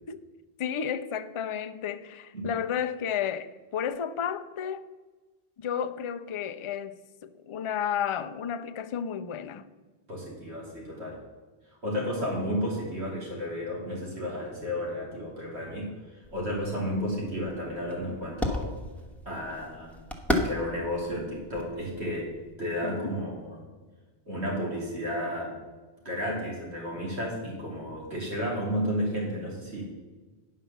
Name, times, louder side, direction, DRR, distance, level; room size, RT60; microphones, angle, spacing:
voice 1, 0.6-4.8 5.6-9.7 22.8-23.1, left 8 dB, 50° left, 0.4 m, -32 dB
voice 2, 10.1-11.2 11.8-18.7 19.2-19.9 20.3-22.3 22.6-23.6 24.3-25.5 26.0-29.8, equal, 80° right, 3.1 m, -32 dB
sound 1, 16.2-22.5, left 1 dB, ahead, 0.9 m, -35 dB
9.7 x 5.6 x 6.8 m
omnidirectional pair, 1.1 m